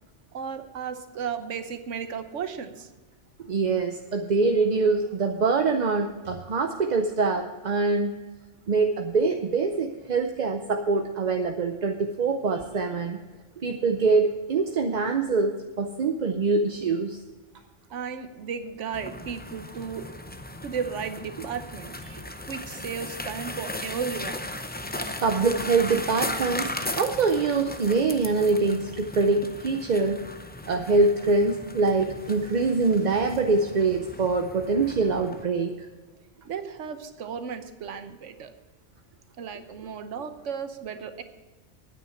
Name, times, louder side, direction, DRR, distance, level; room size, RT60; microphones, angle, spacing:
voice 1, 0.3-2.9 17.9-20.1 20.6-22.2 22.5-24.4 36.4-38.5 39.4-41.2, right 6 dB, 80° right, 10 dB, 1.2 m, -34 dB
voice 2, 3.5-8.2 8.7-13.2 13.6-17.2 25.2-30.2 30.7-35.9, right 4 dB, 45° right, 5 dB, 0.7 m, -24 dB
sound 1, 18.9-35.4, left 1 dB, 15° left, 0.4 m, -37 dB
9.9 x 9.0 x 7.1 m, 1.2 s
omnidirectional pair, 1.2 m